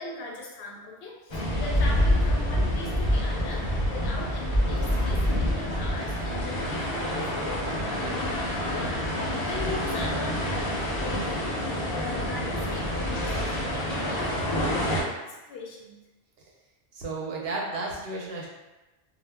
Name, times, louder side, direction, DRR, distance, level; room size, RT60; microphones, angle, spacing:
voice 1, 0.0-16.0, left 3 dB, 70° left, -2 dB, 0.8 m, -39 dB
sound 1, 1.3-15.0, equal, 35° left, 0.5 m, -27 dB
voice 2, 16.9-18.5, right 3 dB, 70° right, -3 dB, 0.8 m, -33 dB
2.0 x 2.0 x 3.3 m, 1.1 s
omnidirectional pair, 1.1 m